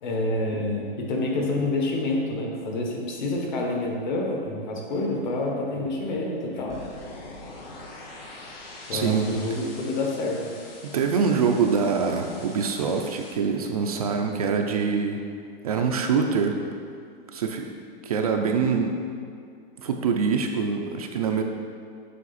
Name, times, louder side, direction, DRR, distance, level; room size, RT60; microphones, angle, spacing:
voice 1, 0.0-6.7 8.9-10.4, left 2 dB, 50° left, 0 dB, 1.4 m, -28 dB
sound 1, 6.7-13.3, left 2 dB, 80° left, 1.5 m, -44 dB
voice 2, 8.9-9.3 10.8-15.2 15.6-16.6 17.3-17.7 18.0-19.0 19.8-21.4, right 5 dB, 40° right, 3 dB, 0.4 m, -24 dB
7.5 x 5.8 x 4.1 m, 2.2 s
supercardioid pair, 180°, 29 cm